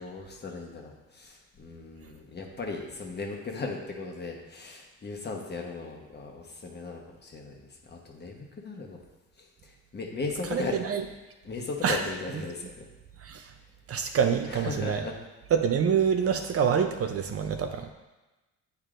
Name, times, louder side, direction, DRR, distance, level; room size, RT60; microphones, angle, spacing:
voice 1, 0.0-9.0 9.4-10.8 11.4-12.9 14.5-15.2, left 3 dB, 35° left, 0 dB, 1.1 m, -37 dB
voice 2, 10.5-11.0 11.8-12.0 13.2-13.5 13.9-15.0 15.5-17.9, right 7 dB, 50° right, 6 dB, 0.6 m, -26 dB
8.7 x 4.6 x 2.5 m, 1.1 s
cardioid pair, 90°, 30 cm